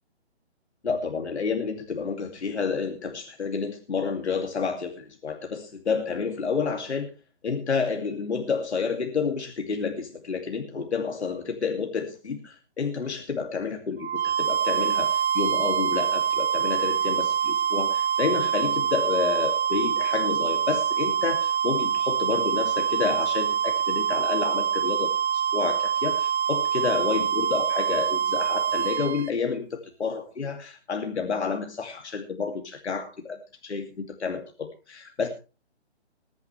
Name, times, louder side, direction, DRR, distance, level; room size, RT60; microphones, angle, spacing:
voice 1, 0.8-7.1 7.4-35.3, left 5 dB, 75° left, 4 dB, 2.7 m, -29 dB
sound 1, 14.0-29.3, right 8 dB, 70° right, 0.6 m, -25 dB
21.0 x 10.5 x 3.3 m, 0.33 s
hypercardioid pair, 160°, 34 cm